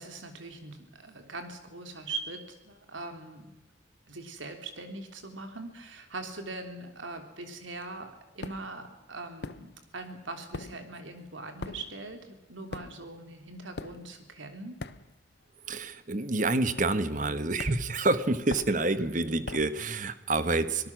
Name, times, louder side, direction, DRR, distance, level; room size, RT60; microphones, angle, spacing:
voice 1, 0.0-3.5 4.1-8.1 8.4-14.8, right 3 dB, 85° right, 6 dB, 3.5 m, -41 dB
sound 1, 8.4-8.8 9.4-10.1 10.3-15.4 15.7-16.0 16.8-17.3 17.6-19.8, left 3 dB, 60° left, 0.8 m, -42 dB
voice 2, 15.7-20.9, right 2 dB, 40° right, 12 dB, 1.2 m, -28 dB
25.0 x 18.5 x 6.2 m, 1.1 s
head